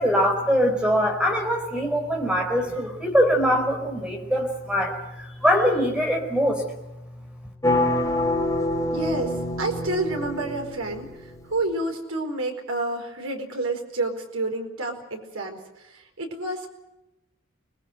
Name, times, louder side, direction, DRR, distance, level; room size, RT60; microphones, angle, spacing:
voice 1, 0.0-6.6, equal, 5° right, 3 dB, 4.5 m, -23 dB
sound 1, 7.6-11.4, left 1 dB, 15° left, 3.0 m, -26 dB
voice 2, 8.9-16.7, right 2 dB, 80° right, 3 dB, 4.7 m, -29 dB
25.0 x 20.0 x 8.1 m, 0.96 s
head